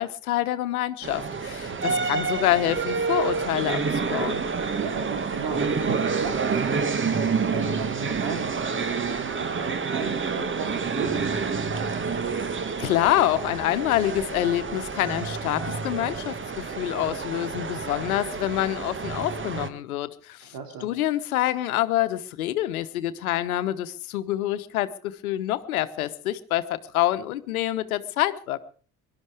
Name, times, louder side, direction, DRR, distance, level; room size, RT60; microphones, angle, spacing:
voice 1, 0.0-4.4 12.8-20.5 20.8-28.6, left 13 dB, 75° left, 12 dB, 1.2 m, -26 dB
sound 1, 1.0-19.7, right 5 dB, 25° right, 1.6 m, -28 dB
voice 2, 1.6-2.1 4.8-12.2 20.4-20.9, right 6 dB, 55° right, 3 dB, 2.9 m, -36 dB
23.5 x 11.5 x 4.9 m, 0.43 s
figure-of-eight pair, 55°, 43 cm